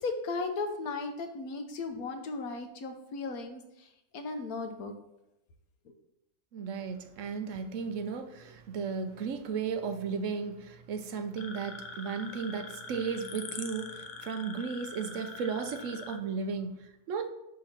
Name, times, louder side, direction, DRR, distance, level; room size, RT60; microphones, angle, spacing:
voice 1, 0.0-4.9 5.8-5.9, left 3 dB, 90° left, 6 dB, 1.4 m, -36 dB
voice 2, 6.5-17.3, right 5 dB, 65° right, 8 dB, 1.0 m, -35 dB
sound 1, 11.4-16.2, left 5 dB, 60° left, 1.0 m, -44 dB
5.3 x 5.1 x 5.8 m, 0.87 s
omnidirectional pair, 1.5 m